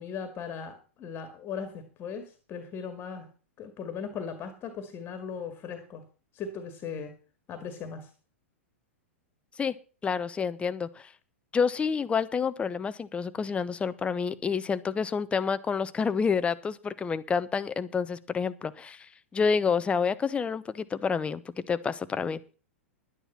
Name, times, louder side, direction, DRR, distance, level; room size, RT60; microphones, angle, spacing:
voice 1, 0.0-3.3 3.6-6.0 6.3-7.1 7.5-8.1, left 6 dB, 30° left, 9 dB, 2.0 m, -38 dB
voice 2, 10.0-11.1 11.5-22.4, left 5 dB, 15° left, 14 dB, 0.8 m, -28 dB
11.0 x 10.0 x 5.7 m, 0.36 s
figure-of-eight pair, 100°, 7 cm